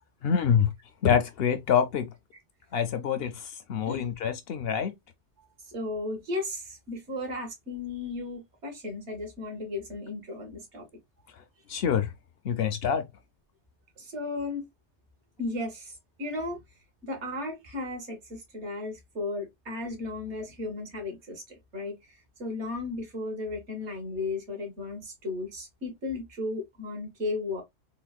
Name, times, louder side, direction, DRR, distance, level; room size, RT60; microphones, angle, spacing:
voice 1, 0.2-0.7 1.0-2.1 2.7-4.9 11.7-12.1 12.4-13.1, left 8 dB, 65° left, 0.7 m, -26 dB
voice 2, 5.7-10.8 14.0-14.7 15.4-16.6 17.0-22.0 22.4-27.6, left 2 dB, 75° right, 1.6 m, -35 dB
3.7 x 2.1 x 2.3 m
omnidirectional pair, 1.2 m